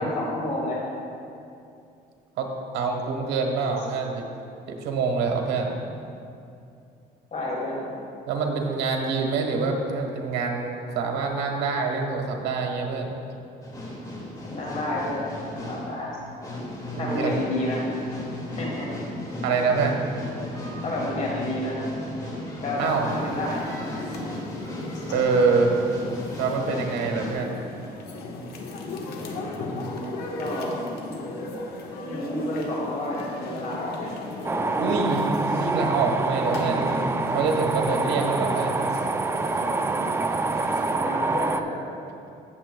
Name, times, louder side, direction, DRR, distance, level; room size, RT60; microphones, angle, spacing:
voice 1, 0.2-0.8 7.3-7.9 14.4-16.2 17.0-17.8 18.5-18.9 20.8-21.8 22.6-23.6 30.4-30.8 32.1-34.2 40.9-41.8, left 1 dB, 45° left, -4 dB, 2.2 m, -30 dB
voice 2, 2.4-4.2 4.7-5.8 8.3-13.2 17.0-17.3 19.4-20.0 22.8-23.1 25.1-25.8 26.4-27.6 34.8-38.8, right 4 dB, 85° right, 2 dB, 1.2 m, -25 dB
sound 1, 13.6-27.3, left 1 dB, 20° left, 2.0 m, -35 dB
sound 2, 22.8-41.0, left 2 dB, 70° left, 1.2 m, -37 dB
sound 3, 34.4-41.6, right 3 dB, 15° right, 0.3 m, -26 dB
16.5 x 7.1 x 2.2 m, 2.6 s
cardioid pair, 110°, 17 cm